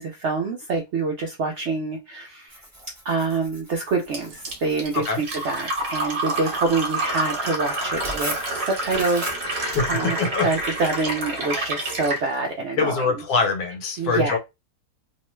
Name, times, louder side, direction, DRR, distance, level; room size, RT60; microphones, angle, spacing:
voice 1, 0.0-2.6 3.0-10.2 10.4-13.1 14.0-14.4, right 3 dB, 70° right, 0.6 m, -26 dB
Tearing, 2.5-10.7, right 1 dB, 15° right, 0.8 m, -40 dB
Fill (with liquid), 4.1-12.2, right 2 dB, 50° right, 1.0 m, -28 dB
voice 2, 12.8-14.4, left 4 dB, 70° left, 1.3 m, -23 dB
3.0 x 2.1 x 3.0 m
omnidirectional pair, 1.7 m